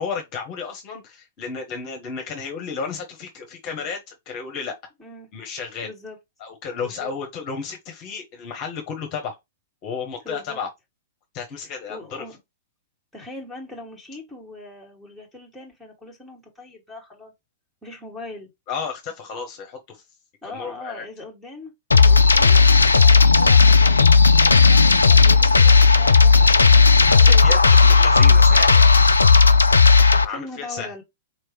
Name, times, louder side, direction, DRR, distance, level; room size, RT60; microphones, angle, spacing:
voice 1, 0.0-4.7 5.3-5.9 6.4-9.4 9.8-10.7 11.3-12.2 18.7-20.0 20.5-21.0 27.0-29.1 30.2-30.9, left 5 dB, 35° left, 1.1 m, -32 dB
voice 2, 5.8-6.2 6.8-7.1 10.2-10.6 11.6-12.3 13.1-17.3 17.8-18.5 20.4-24.0 24.3-27.6 29.4-29.6 29.9-31.0, left 2 dB, ahead, 1.9 m, -40 dB
sound 1, 21.9-30.2, left 4 dB, 80° left, 0.3 m, -13 dB
4.3 x 3.1 x 2.9 m
figure-of-eight pair, 100°, 0 cm